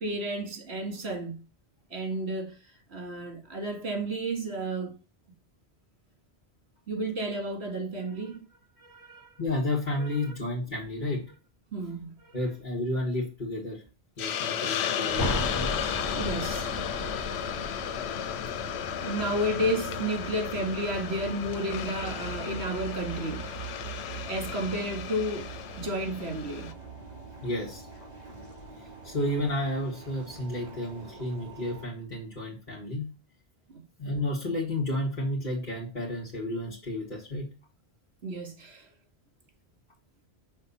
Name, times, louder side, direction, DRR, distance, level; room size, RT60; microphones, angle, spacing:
voice 1, 0.0-1.4 1.9-2.6 2.9-5.0 6.9-8.4 8.8-9.3 10.0-10.3 11.7-12.3 16.1-16.7 19.0-23.4 24.3-26.7 33.7-33.8 38.2-38.9, right 1 dB, 85° right, 1.9 m, -32 dB
voice 2, 9.4-11.2 12.3-13.8 14.2-15.4 27.4-27.8 28.3-28.4 29.0-33.1 34.0-37.4, left 1 dB, 50° left, 1.9 m, -31 dB
Hiss, 14.2-26.7, left 9 dB, 85° left, 0.9 m, -34 dB
sound 1, 15.1-20.6 20.9-21.0, left 1 dB, 20° left, 1.1 m, -36 dB
sound 2, 15.8-31.9, right 6 dB, 40° right, 1.9 m, -43 dB
5.9 x 3.3 x 5.4 m
omnidirectional pair, 1.1 m